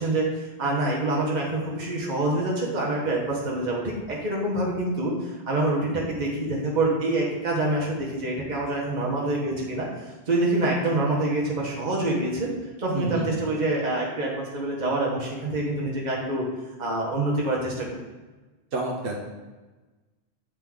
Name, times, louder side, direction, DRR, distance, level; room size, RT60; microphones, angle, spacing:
voice 1, 0.0-9.9 10.3-12.5 12.8-16.4 16.8-18.0, right 2 dB, 45° right, -3 dB, 1.1 m, -26 dB
voice 2, 12.9-13.3 18.7-19.1, right 2 dB, 65° right, -1 dB, 1.0 m, -29 dB
7.5 x 4.3 x 3.6 m, 1.2 s
omnidirectional pair, 1.0 m